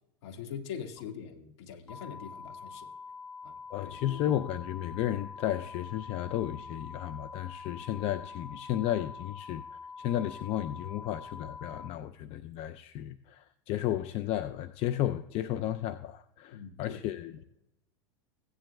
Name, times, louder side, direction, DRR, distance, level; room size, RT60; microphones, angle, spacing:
voice 1, 0.2-2.9 3.4-3.6 3.8-3.9 16.5-17.0, left 8 dB, 70° left, 2.0 m, -42 dB
sound 1, 1.9-11.9, left 5 dB, 10° left, 1.4 m, -45 dB
voice 2, 3.7-17.4, left 12 dB, 45° left, 0.5 m, -33 dB
16.5 x 10.5 x 2.3 m
hypercardioid pair, 105°, 15 cm